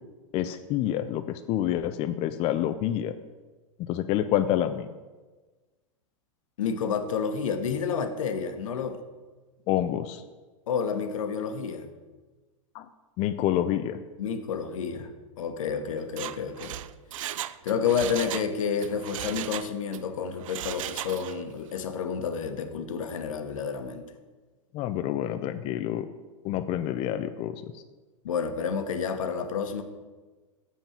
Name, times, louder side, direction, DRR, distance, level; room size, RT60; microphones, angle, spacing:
voice 1, 0.3-3.1 3.8-4.9 9.7-10.2 12.7-12.9 13.2-14.0 24.7-26.1 26.4-27.8, left 12 dB, 35° left, 9 dB, 0.4 m, -28 dB
voice 2, 6.6-9.0 10.7-11.9 14.2-15.1 15.4-16.8 17.6-24.1 28.2-29.8, left 6 dB, 80° left, 8 dB, 1.1 m, -30 dB
Mechanisms, 16.0-18.5 18.8-20.0 20.4-21.5 21.8-21.9, right 12 dB, 75° right, 0.4 m, -36 dB
7.2 x 5.7 x 7.2 m, 1.3 s
hypercardioid pair, 120°, 17 cm